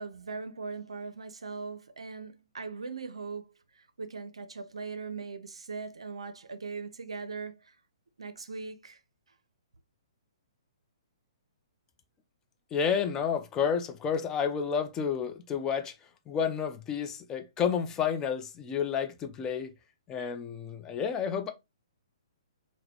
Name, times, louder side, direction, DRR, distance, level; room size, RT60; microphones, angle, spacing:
voice 1, 0.0-7.8 8.2-9.0, right 4 dB, 80° right, 0.5 m, -40 dB
voice 2, 12.7-15.9 16.3-19.7 20.1-21.5, left 7 dB, 20° left, 0.4 m, -30 dB
3.8 x 2.1 x 2.7 m
figure-of-eight pair, 125°, 3 cm